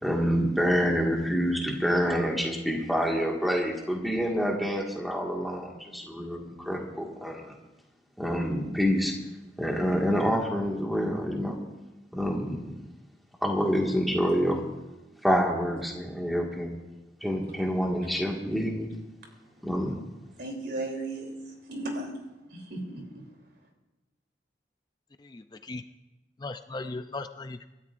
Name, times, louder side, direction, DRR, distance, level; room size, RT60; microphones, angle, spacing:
voice 1, 0.0-7.5 8.2-9.1 9.6-11.6 12.1-12.7 13.4-14.6 15.2-16.8 17.2-18.9 19.6-20.0, equal, ahead, -1 dB, 1.9 m, -27 dB
voice 2, 20.4-21.3 21.7-22.1 22.5-23.2, right 2 dB, 65° right, 1 dB, 3.3 m, -35 dB
voice 3, 25.3-25.8 26.4-27.7, left 3 dB, 25° left, 8 dB, 0.4 m, -37 dB
26.0 x 13.0 x 2.6 m, 1.1 s
head